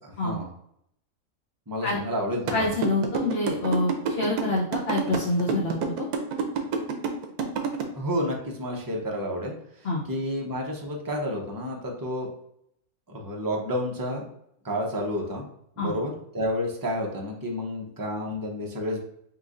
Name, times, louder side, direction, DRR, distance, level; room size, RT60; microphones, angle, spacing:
voice 1, 0.0-0.5 1.7-2.7 7.9-9.5 10.0-12.3 13.1-14.3 14.6-15.4 15.8-19.0, equal, 30° right, 0 dB, 0.4 m, -30 dB
voice 2, 2.5-3.9 4.2-6.1 9.8-10.0 15.8-15.9, left 2 dB, 50° left, -4 dB, 0.9 m, -26 dB
sound 1, 2.5-7.8, right 5 dB, 90° right, 1.2 m, -27 dB
5.6 x 2.8 x 2.5 m, 0.74 s
omnidirectional pair, 1.6 m